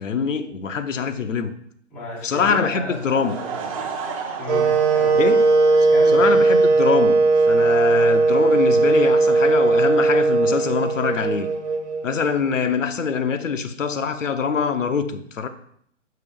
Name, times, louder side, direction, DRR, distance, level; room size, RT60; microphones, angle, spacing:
voice 1, 0.0-1.5 2.2-3.4 5.1-5.5 6.1-7.2 7.5-11.5 12.0-15.5, left 6 dB, 80° left, 0.7 m, -24 dB
voice 2, 1.9-3.5 3.8-3.9 4.4-5.2 5.9-6.4, left 3 dB, 5° left, 0.5 m, -33 dB
Laughter / Crowd, 2.9-6.4, right 5 dB, 30° right, 0.7 m, -34 dB
Wind instrument woodwind instrument, 4.5-12.4, right 3 dB, 65° right, 1.3 m, -18 dB
5.7 x 5.6 x 3.5 m
figure-of-eight pair, 135°, 37 cm